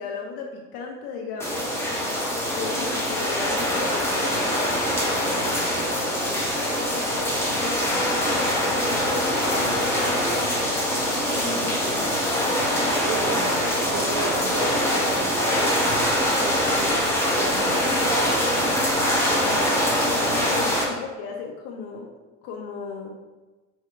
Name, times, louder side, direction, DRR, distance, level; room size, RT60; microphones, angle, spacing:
voice 1, 0.0-1.8 2.5-5.8 6.3-7.9 8.3-10.5 11.3-12.1 19.4-22.1 22.4-23.2, left 5 dB, 60° left, 0 dB, 0.7 m, -36 dB
Mild Rain Ambience edlarez vsnr, 1.4-20.8, equal, 5° left, 1.1 m, -23 dB
voice 2, 12.4-17.1 17.4-18.9, right 4 dB, 45° right, 3 dB, 0.5 m, -35 dB
4.7 x 2.8 x 3.3 m, 1.2 s
supercardioid pair, 100°, 40 cm